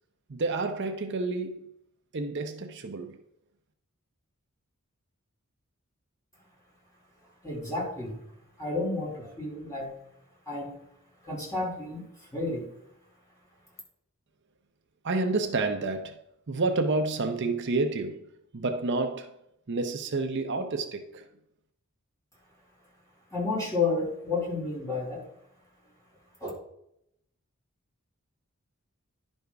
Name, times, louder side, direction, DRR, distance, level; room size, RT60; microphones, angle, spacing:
voice 1, 0.3-1.7 2.1-3.2 15.0-19.4 19.7-21.3, right 3 dB, 55° right, 0.7 m, -29 dB
voice 2, 7.4-8.2 8.6-9.9 10.5-10.8 11.2-12.7 23.3-25.2 26.4-26.5, left 3 dB, 15° left, 2.6 m, -31 dB
10.5 x 5.3 x 3.4 m
head